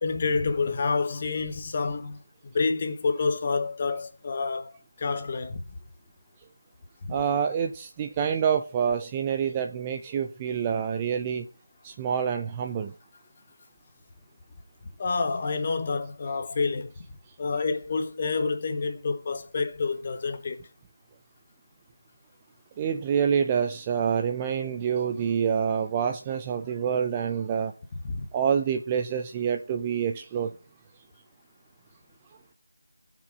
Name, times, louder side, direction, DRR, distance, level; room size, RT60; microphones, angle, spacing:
voice 1, 0.0-5.6 7.0-7.1 15.0-17.0 17.4-20.6 28.1-28.3, left 4 dB, 25° left, 1.1 m, -28 dB
voice 2, 7.1-11.5 11.8-12.9 22.8-27.7 28.3-30.5, right 7 dB, 15° right, 0.5 m, -27 dB
15.5 x 6.1 x 4.8 m
figure-of-eight pair, 170°, 0 cm